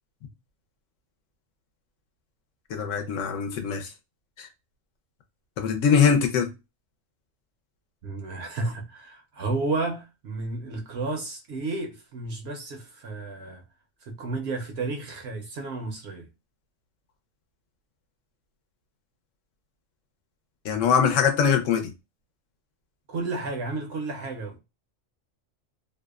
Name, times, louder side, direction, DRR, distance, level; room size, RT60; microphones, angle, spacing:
voice 1, 2.7-3.9 4.4-4.5 5.6-6.5 20.6-21.9, left 7 dB, 75° left, 0.9 m, -22 dB
voice 2, 8.0-13.6 14.1-16.3 23.1-24.6, right 3 dB, 65° right, 0.7 m, -32 dB
2.6 x 2.0 x 2.2 m
omnidirectional pair, 1.4 m